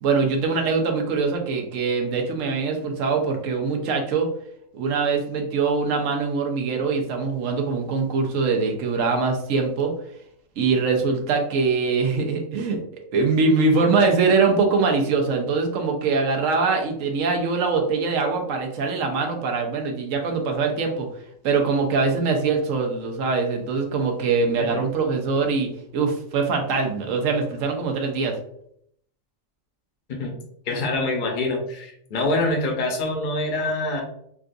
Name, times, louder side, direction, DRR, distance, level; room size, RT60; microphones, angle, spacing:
voice 1, 0.0-4.3 4.7-9.9 10.6-21.1 21.4-28.3, right 4 dB, 75° right, 3 dB, 1.0 m, -23 dB
voice 2, 30.7-34.0, left 2 dB, 45° left, 1 dB, 0.8 m, -25 dB
3.7 x 2.4 x 2.5 m, 0.68 s
omnidirectional pair, 1.4 m